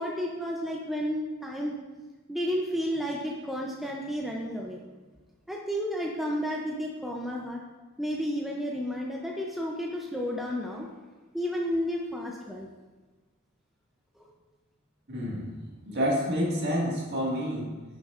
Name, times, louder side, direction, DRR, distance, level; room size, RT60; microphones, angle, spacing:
voice 1, 0.0-1.8 2.3-4.8 5.5-7.6 8.0-10.9 11.3-12.7, equal, ahead, -2 dB, 0.5 m, -32 dB
voice 2, 15.1-15.5 15.9-17.7, equal, 55° right, -4 dB, 1.9 m, -28 dB
9.5 x 6.1 x 2.5 m, 1.3 s
head